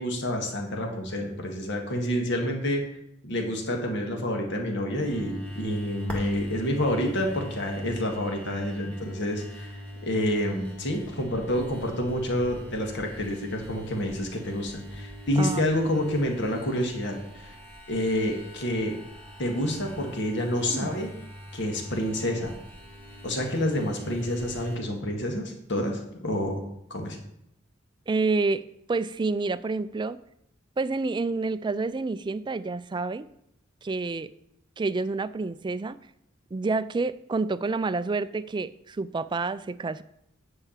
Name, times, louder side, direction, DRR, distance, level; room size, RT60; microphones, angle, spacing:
voice 1, 0.0-2.8 3.2-9.7 10.0-17.6 17.9-19.0 19.4-21.1 21.5-22.5 23.2-26.6 26.9-27.2, left 1 dB, 60° left, 2 dB, 1.8 m, -28 dB
sound 1, 5.0-24.8, equal, 5° left, 1.9 m, -42 dB
voice 2, 28.1-28.6 28.9-30.2 30.8-33.3 33.8-34.3 34.8-36.0 36.5-40.0, right 3 dB, 20° right, 15 dB, 0.3 m, -28 dB
9.9 x 4.8 x 7.3 m, 0.78 s
head